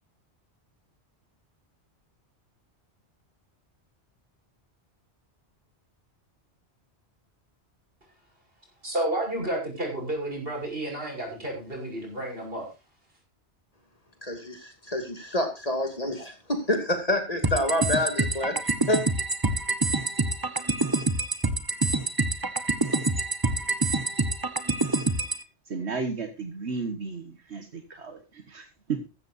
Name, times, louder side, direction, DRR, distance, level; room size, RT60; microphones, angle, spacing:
voice 1, 8.8-12.7, right 1 dB, 55° right, 1 dB, 6.5 m, -31 dB
voice 2, 14.2-18.5 18.9-19.0, left 1 dB, 35° left, 5 dB, 2.8 m, -27 dB
sound 1, 17.4-25.4, right 2 dB, 20° right, 1.0 m, -26 dB
voice 3, 25.7-29.1, right 4 dB, 75° right, 7 dB, 1.8 m, -34 dB
15.0 x 13.5 x 2.7 m, 0.27 s
omnidirectional pair, 1.1 m